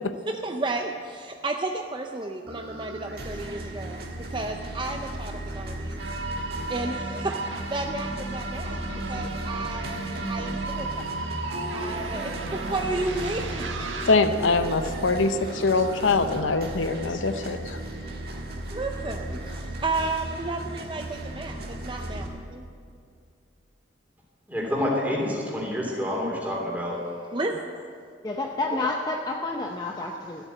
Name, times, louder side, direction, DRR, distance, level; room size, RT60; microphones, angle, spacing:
voice 1, 0.3-6.0 6.7-7.4 7.7-8.8 9.1-11.1 11.7-13.9 18.7-22.6 27.3-27.8, right 2 dB, 25° right, 4 dB, 0.5 m, -32 dB
sound 1, 2.5-22.3, right 1 dB, 50° right, 1.7 m, -35 dB
sound 2, 6.0-14.1, right 3 dB, 75° right, 1.4 m, -34 dB
voice 2, 14.1-17.8, left 3 dB, 80° left, 9 dB, 0.7 m, -23 dB
voice 3, 24.5-27.0, left 1 dB, 10° right, -3 dB, 3.1 m, -28 dB
voice 4, 28.2-30.5, left 2 dB, 20° left, 1 dB, 0.7 m, -29 dB
14.0 x 8.3 x 9.2 m, 2.3 s
head